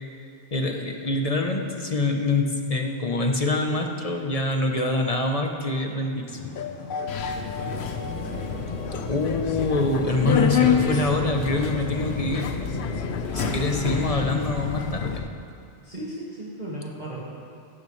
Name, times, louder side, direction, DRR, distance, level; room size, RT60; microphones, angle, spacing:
voice 1, 0.5-6.5 9.1-12.5 13.3-15.2, left 2 dB, 35° left, 2 dB, 1.0 m, -25 dB
sound 1, 6.3-15.3, left 6 dB, 65° left, 0.7 m, -35 dB
Subway metro underground, 7.1-15.2, left 6 dB, 85° left, 1.1 m, -28 dB
voice 2, 7.2-8.3 13.3-14.1 15.8-17.2, right 1 dB, 45° right, -7 dB, 1.9 m, -37 dB
sound 2, 7.6-13.1, equal, 20° left, 1.7 m, -40 dB
15.0 x 14.5 x 3.2 m, 2.4 s
omnidirectional pair, 1.1 m